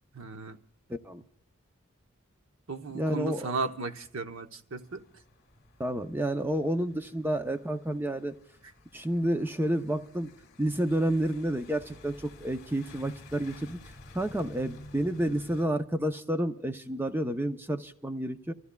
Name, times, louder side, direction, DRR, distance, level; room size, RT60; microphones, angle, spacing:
voice 1, 0.1-0.6 2.7-5.0, right 4 dB, 70° right, 0.9 m, -35 dB
voice 2, 0.9-1.2 2.9-3.5 5.8-8.3 8.9-10.3 10.6-13.8 14.1-18.5, right 1 dB, 10° right, 0.6 m, -30 dB
sound 1, 4.8-15.7, left 2 dB, 50° left, 2.0 m, -52 dB
29.0 x 14.5 x 2.3 m
head